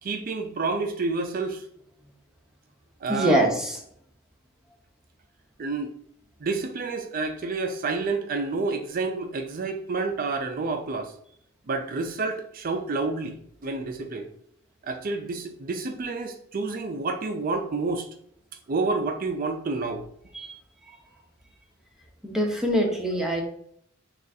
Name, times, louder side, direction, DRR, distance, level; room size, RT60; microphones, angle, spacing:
voice 1, 0.0-1.6 3.0-3.5 5.6-5.9 6.4-11.1 11.7-13.4 13.6-14.3 14.8-18.1 18.7-20.0, right 3 dB, 45° right, 0.4 m, -29 dB
voice 2, 3.1-3.8 20.3-20.6 22.2-23.4, right 1 dB, 5° right, 0.7 m, -24 dB
6.2 x 2.4 x 2.7 m
head